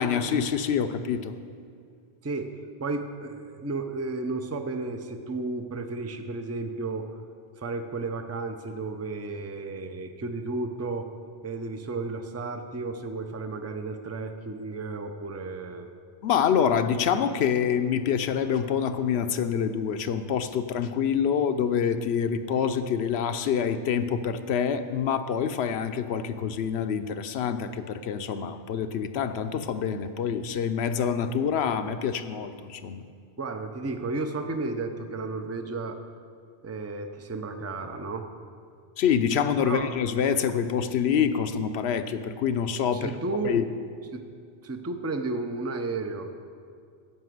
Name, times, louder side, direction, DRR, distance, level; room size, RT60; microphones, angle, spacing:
voice 1, 0.0-1.3 16.2-33.0 39.0-43.1 43.4-43.6, left 7 dB, 75° left, 9 dB, 0.8 m, -26 dB
voice 2, 2.2-2.5 2.8-7.1 7.6-11.1 11.4-15.9 33.4-36.0 36.6-38.3 39.6-39.9 42.9-43.7 44.1-44.2 44.6-46.3, right 3 dB, 20° right, 6 dB, 0.4 m, -33 dB
11.0 x 5.9 x 7.7 m, 2.3 s
omnidirectional pair, 1.1 m